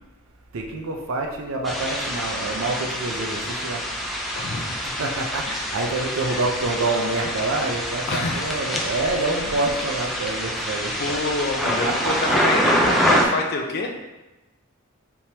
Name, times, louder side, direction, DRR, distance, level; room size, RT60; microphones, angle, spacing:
voice 1, 0.5-3.8 5.0-5.5 5.7-11.2 11.8-12.6, right 2 dB, 65° right, 1 dB, 0.6 m, -27 dB
sound 1, 1.7-13.3, equal, ahead, 0.5 m, -26 dB
voice 2, 4.4-4.8 5.5-5.6 6.3-6.4 8.1-8.8 11.0-13.9, left 3 dB, 50° left, 2 dB, 0.5 m, -28 dB
4.4 x 3.5 x 2.8 m, 1.1 s
head